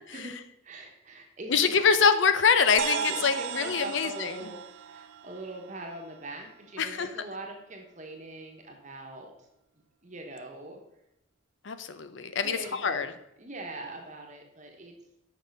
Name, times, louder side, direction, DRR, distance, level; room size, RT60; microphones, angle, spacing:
voice 1, 0.6-1.7 2.9-4.6 4.9-9.3 10.0-10.8 12.4-13.0 13.4-14.9, right 2 dB, 35° right, 2 dB, 1.1 m, -42 dB
voice 2, 1.5-4.4 6.8-7.1 11.6-13.1, left 6 dB, 70° left, 11 dB, 0.6 m, -24 dB
sound 1, 2.8-6.5, right 8 dB, 70° right, 0.4 m, -36 dB
6.5 x 5.4 x 5.3 m, 0.84 s
head